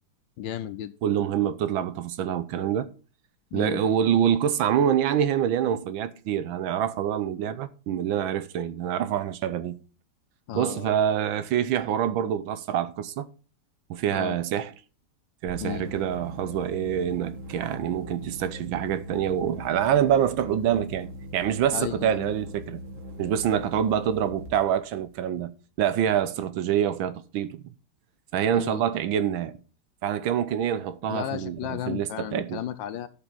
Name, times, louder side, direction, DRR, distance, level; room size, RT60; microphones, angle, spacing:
voice 1, 0.4-0.9 3.5-3.8 10.5-10.9 14.1-14.4 15.6-15.9 21.7-22.3 28.5-28.8 31.1-33.1, left 11 dB, 70° left, 1.2 m, -34 dB
voice 2, 1.0-2.9 3.5-9.8 10.5-13.3 13.9-14.7 15.4-22.8 23.2-25.5 25.8-27.6 28.3-29.6 30.0-32.6, right 9 dB, 75° right, 1.4 m, -26 dB
sound 1, 15.5-24.6, equal, 35° right, 2.2 m, -41 dB
12.5 x 5.7 x 4.0 m
omnidirectional pair, 2.4 m